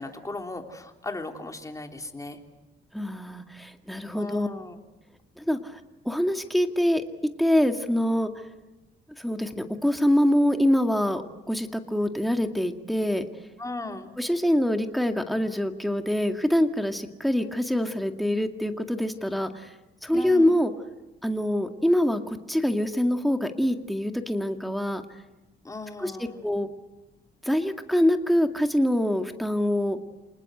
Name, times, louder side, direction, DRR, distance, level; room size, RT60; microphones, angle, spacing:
voice 1, 0.0-2.4 4.1-4.8 13.6-14.1 20.1-20.6 25.6-26.4, left 2 dB, 15° left, 4 dB, 3.3 m, -37 dB
voice 2, 2.9-4.5 5.4-5.8 6.1-7.0 7.4-8.3 9.2-13.2 14.2-19.7 20.0-20.7 21.2-25.0 26.0-26.7 27.4-30.0, left 1 dB, ahead, 5 dB, 2.1 m, -25 dB
27.5 x 20.0 x 8.0 m, 1.0 s
cardioid pair, 90°, 20 cm